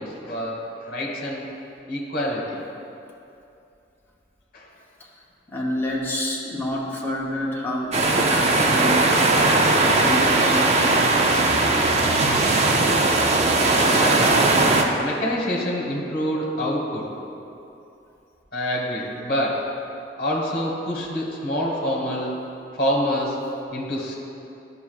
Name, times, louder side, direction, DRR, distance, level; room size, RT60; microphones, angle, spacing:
voice 1, 0.0-1.5 1.9-2.6 4.5-4.7 14.0-14.4 15.0-17.1 18.5-19.7 20.2-22.3 22.7-23.5 23.7-24.2, equal, 50° left, -2 dB, 1.2 m, -26 dB
voice 2, 5.5-9.1 9.9-11.1, left 1 dB, 10° left, -4 dB, 0.8 m, -28 dB
sound 1, 7.9-14.8, right 2 dB, 35° right, 0.4 m, -19 dB
10.5 x 5.5 x 2.3 m, 2.8 s
head